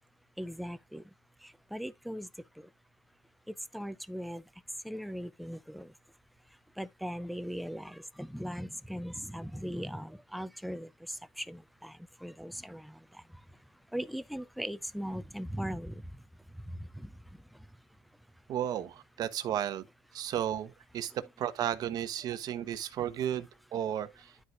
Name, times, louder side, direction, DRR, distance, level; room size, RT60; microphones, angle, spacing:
voice 1, 0.4-1.0 1.7-2.3 3.7-4.4 4.8-5.9 6.8-10.9 11.4-11.9 12.2-12.9 13.9-15.9 17.0-17.1, equal, ahead, 0.4 m, -39 dB
voice 2, 18.5-19.8 20.1-24.3, right 10 dB, 50° right, 1.0 m, -34 dB
12.5 x 4.7 x 2.4 m
cardioid pair, 145°, 8 cm